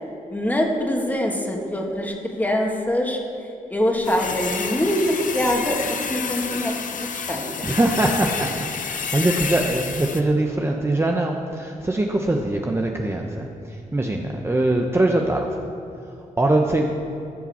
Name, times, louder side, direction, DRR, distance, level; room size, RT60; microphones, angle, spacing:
voice 1, 0.3-3.2 3.7-5.8 6.1-6.7 7.3-7.4, left 1 dB, 10° left, 0 dB, 2.2 m, -23 dB
sound 1, 4.0-10.2, left 6 dB, 65° left, 0.9 m, -29 dB
voice 2, 7.6-13.5 13.9-15.5 16.4-16.9, right 2 dB, 15° right, 1 dB, 1.0 m, -22 dB
15.5 x 5.7 x 7.2 m, 2.8 s
cardioid pair, 70°, 15 cm